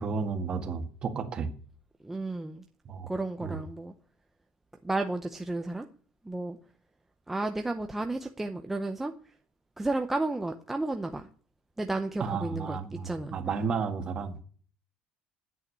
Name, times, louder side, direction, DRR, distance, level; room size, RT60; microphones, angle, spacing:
voice 1, 0.0-1.5 2.9-3.1 3.4-3.6 12.2-14.4, right 5 dB, 30° right, 6 dB, 1.7 m, -32 dB
voice 2, 2.0-2.6 3.1-3.9 4.8-5.9 6.2-6.6 7.3-9.3 9.8-11.3 11.8-13.4, right 2 dB, 5° right, 5 dB, 0.7 m, -32 dB
10.0 x 8.5 x 9.6 m, 0.44 s
cardioid pair, 175°, 3 cm